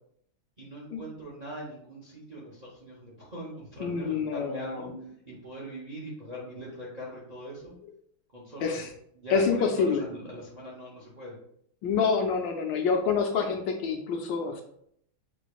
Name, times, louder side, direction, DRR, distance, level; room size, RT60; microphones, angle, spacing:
voice 1, 0.6-4.9 5.2-7.7 8.3-8.8 9.1-11.3, equal, 35° right, -5 dB, 0.6 m, -41 dB
voice 2, 3.8-5.0 8.6-8.9 9.3-10.0 11.8-14.6, left 5 dB, 75° left, 4 dB, 1.2 m, -27 dB
5.9 x 3.2 x 2.4 m, 0.68 s
omnidirectional pair, 2.2 m